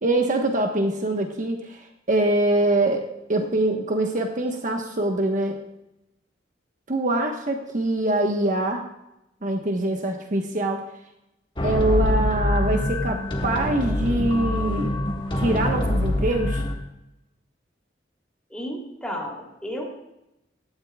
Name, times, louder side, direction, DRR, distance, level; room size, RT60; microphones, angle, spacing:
voice 1, 0.0-3.0 3.3-5.6 6.9-8.8 9.4-10.8 11.6-15.0 15.3-16.6, right 2 dB, 45° right, 2 dB, 1.2 m, -24 dB
sound 1, 11.6-16.7, left 1 dB, 30° left, 1.6 m, -25 dB
voice 2, 18.5-19.9, equal, 5° left, -2 dB, 2.8 m, -33 dB
16.5 x 12.5 x 2.3 m, 0.89 s
head